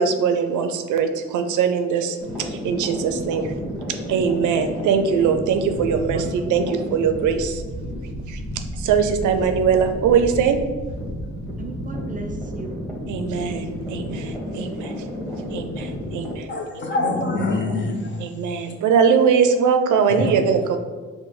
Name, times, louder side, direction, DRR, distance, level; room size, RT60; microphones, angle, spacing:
voice 1, 0.0-3.5 4.1-7.6 8.3-10.6 13.1-14.9 15.5-16.5 18.2-20.8, right 6 dB, 80° right, 6 dB, 0.5 m, -21 dB
sound 1, 2.2-16.3, equal, ahead, 1.2 m, -31 dB
voice 2, 4.5-4.8 5.5-6.5 11.6-12.8 14.5-14.6 15.2-15.3, right 3 dB, 25° right, 4 dB, 0.4 m, -39 dB
voice 3, 16.5-18.2 20.2-20.3, left 2 dB, 40° left, 1 dB, 0.8 m, -24 dB
4.7 x 2.2 x 4.8 m, 1.4 s
cardioid pair, 90°, 30 cm